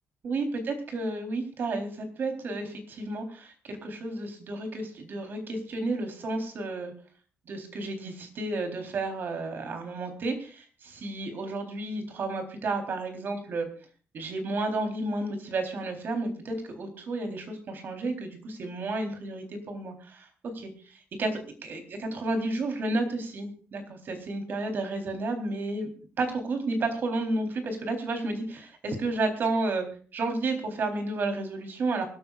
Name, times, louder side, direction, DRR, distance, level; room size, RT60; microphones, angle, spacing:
voice 1, 0.2-6.9 7.5-13.7 14.1-20.3 20.5-20.7 21.2-21.3 21.6-25.9 26.2-29.9 30.1-32.1, right 2 dB, 50° right, 5 dB, 3.9 m, -31 dB
24.0 x 13.5 x 2.5 m, 0.40 s
wide cardioid pair, 165°, 4 cm